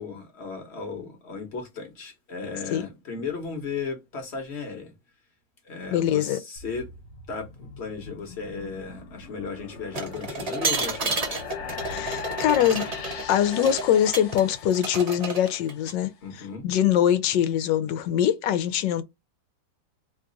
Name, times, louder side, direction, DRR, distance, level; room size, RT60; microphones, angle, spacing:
voice 1, 0.0-4.9 5.6-6.9 7.3-11.4 16.2-16.6, left 5 dB, 45° left, 1.1 m, -35 dB
voice 2, 5.9-6.4 11.8-12.8 13.3-16.1 16.6-19.0, left 10 dB, 90° left, 1.3 m, -23 dB
sound 1, 6.6-15.9, left 5 dB, 70° left, 1.4 m, -40 dB
sound 2, 9.9-14.4 14.7-15.9, right 3 dB, 50° right, 0.4 m, -31 dB
3.1 x 2.3 x 3.8 m
omnidirectional pair, 1.9 m